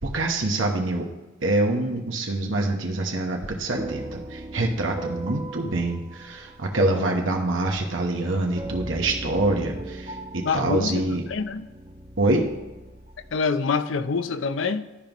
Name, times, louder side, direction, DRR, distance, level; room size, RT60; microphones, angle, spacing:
voice 1, 0.0-1.1 1.4-11.2 12.2-12.5, right 2 dB, 85° right, 1.1 m, -25 dB
sound 1, 3.8-13.4, right 1 dB, 30° right, 1.0 m, -39 dB
voice 2, 10.4-11.7 13.3-14.9, left 5 dB, 80° left, 0.5 m, -26 dB
13.0 x 5.2 x 3.0 m
head